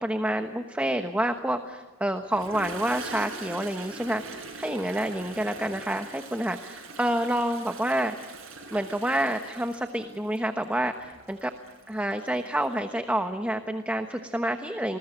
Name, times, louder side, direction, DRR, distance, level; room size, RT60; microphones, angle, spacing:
voice 1, 0.0-8.1 8.7-11.5 11.9-15.0, right 1 dB, 5° right, 6 dB, 1.1 m, -28 dB
Toilet flush, 2.2-12.7, right 3 dB, 65° right, 7.8 m, -43 dB
28.0 x 21.0 x 10.0 m, 1.3 s
head